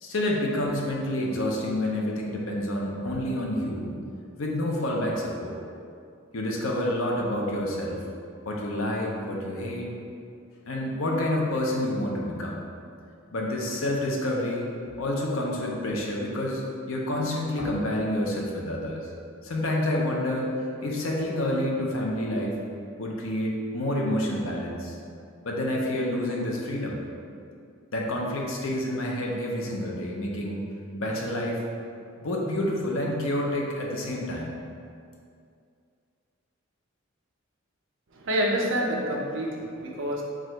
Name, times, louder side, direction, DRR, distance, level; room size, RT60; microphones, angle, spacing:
voice 1, 0.0-3.9 4.4-5.6 6.3-8.0 8.5-9.9 10.7-12.6 13.3-14.7 15.0-19.1 19.4-22.6 23.0-25.0 25.4-27.0 27.9-30.7 31.0-31.6 32.2-34.6, left 1 dB, 75° left, -2 dB, 0.7 m, -28 dB
voice 2, 38.1-40.2, equal, 65° right, -1 dB, 0.7 m, -27 dB
4.8 x 2.5 x 4.4 m, 2.4 s
head